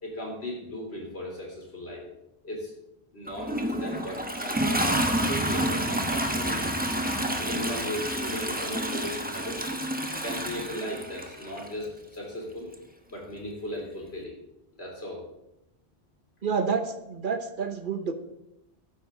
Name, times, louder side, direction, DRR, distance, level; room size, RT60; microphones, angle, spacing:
voice 1, 0.0-2.0 2.4-2.7 3.1-6.8 7.3-9.7 10.2-12.7 13.1-14.3 14.8-15.2, left 1 dB, 75° left, -1 dB, 3.8 m, -37 dB
Toilet flush, 3.3-11.7 12.7-12.8, right 1 dB, 10° right, 0.9 m, -29 dB
voice 2, 16.4-18.1, right 5 dB, 55° right, 9 dB, 1.0 m, -29 dB
13.5 x 9.8 x 3.8 m, 0.88 s
omnidirectional pair, 1.1 m